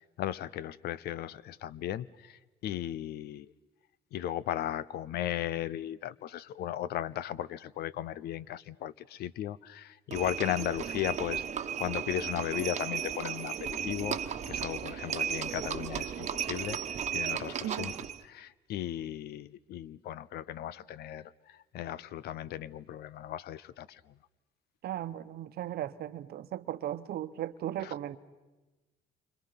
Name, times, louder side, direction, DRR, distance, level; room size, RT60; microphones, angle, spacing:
voice 1, 0.2-2.3 2.6-3.5 4.1-11.4 11.8-14.2 14.5-16.8 17.1-17.9 18.3-21.3 21.7-24.0 27.8-27.9, left 12 dB, 70° left, 0.7 m, -36 dB
Livestock farm animals working animals, 10.1-18.2, right 8 dB, 45° right, 1.3 m, -35 dB
voice 2, 17.6-17.9 24.8-28.2, right 12 dB, 65° right, 1.0 m, -37 dB
28.0 x 25.5 x 5.8 m
cardioid pair, 110°, 17 cm